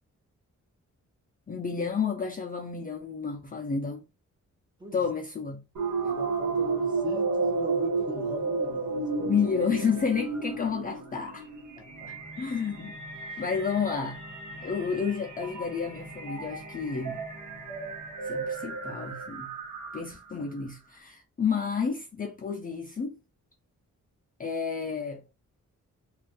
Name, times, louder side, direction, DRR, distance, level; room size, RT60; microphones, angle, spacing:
voice 1, 1.5-4.1 4.9-5.6 9.2-11.5 12.1-12.9 13.4-14.2 14.6-17.2 18.2-19.6 19.9-23.2 24.4-25.2, left 6 dB, 30° left, 0.4 m, -30 dB
sound 1, 5.8-20.3, right 4 dB, 70° right, 1.2 m, -33 dB
voice 2, 6.0-9.4 11.8-12.1 13.3-13.4, right 2 dB, 15° right, 0.9 m, -41 dB
2.5 x 2.4 x 3.4 m
wide cardioid pair, 150°, 31 cm